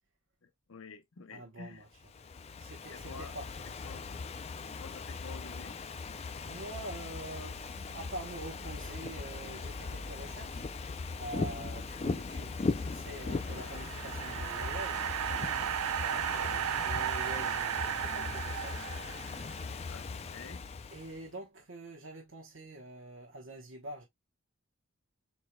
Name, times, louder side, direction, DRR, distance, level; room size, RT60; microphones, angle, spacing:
voice 1, 0.4-1.8 2.9-3.3 3.8-4.2 4.8-5.8 16.1-16.5 17.3-17.5 18.0-18.4 18.9-19.0 19.9-20.6, left 4 dB, 65° left, 0.7 m, -49 dB
voice 2, 1.3-1.9 2.6-3.5 6.4-10.6 11.2-15.0 16.0-18.9 20.9-24.0, right 1 dB, 60° right, 1.0 m, -45 dB
Ocean / Fireworks, 2.0-21.3, left 4 dB, 30° left, 0.3 m, -39 dB
sound 1, 7.5-15.4, equal, 10° right, 0.9 m, -50 dB
sound 2, 13.2-19.6, right 10 dB, 85° right, 0.3 m, -35 dB
4.4 x 4.4 x 2.2 m
head